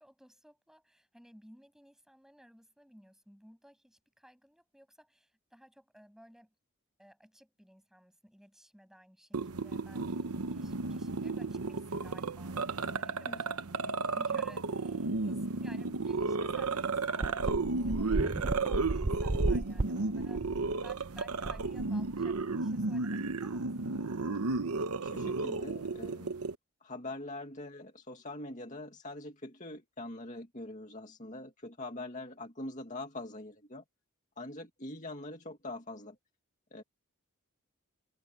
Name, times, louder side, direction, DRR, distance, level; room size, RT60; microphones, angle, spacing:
voice 1, 0.0-6.5 7.0-24.0, equal, ahead, 7.5 m, -57 dB
sound 1, 9.3-26.5, right 3 dB, 85° right, 1.0 m, -33 dB
sound 2, 16.2-16.3 16.6-16.7 17.2-22.4, right 2 dB, 30° right, 0.5 m, -34 dB
voice 2, 25.0-26.3 26.8-33.8 34.4-36.2 36.7-36.8, left 2 dB, 35° left, 2.2 m, -43 dB
head